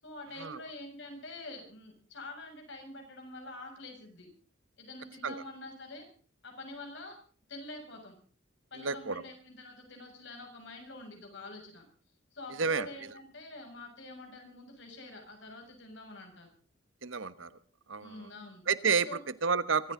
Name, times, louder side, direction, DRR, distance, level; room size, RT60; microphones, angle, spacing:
voice 1, 0.0-4.3 4.8-6.1 6.4-7.2 7.5-8.2 8.7-11.9 12.3-16.5 18.0-18.7 19.1-19.2, left 2 dB, 65° left, 3 dB, 7.2 m, -46 dB
voice 2, 8.7-9.2 12.6-12.9 17.0-17.5 17.9-18.3 18.7-19.9, right 5 dB, 75° right, 14 dB, 1.2 m, -30 dB
24.0 x 15.0 x 3.9 m, 0.42 s
head